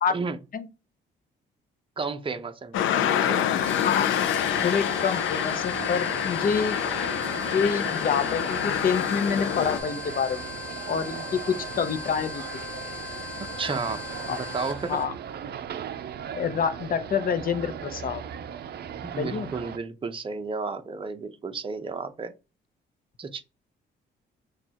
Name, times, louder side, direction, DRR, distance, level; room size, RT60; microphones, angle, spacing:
voice 1, 2.0-3.5 13.4-15.0 19.0-22.3 23.2-23.4, right 4 dB, 25° right, 0.7 m, -33 dB
sound 1, 2.7-9.8, left 10 dB, 80° left, 0.6 m, -27 dB
sound 2, 3.6-15.0, left 5 dB, 5° left, 1.2 m, -39 dB
sound 3, 3.7-19.8, right 8 dB, 55° right, 0.5 m, -38 dB
voice 2, 4.6-6.8 7.5-10.5 10.9-12.4 14.3-14.4 14.9-15.1 16.3-18.2 19.2-19.5, left 6 dB, 45° left, 0.7 m, -27 dB
6.3 x 2.4 x 2.9 m
cardioid pair, 90°, 20 cm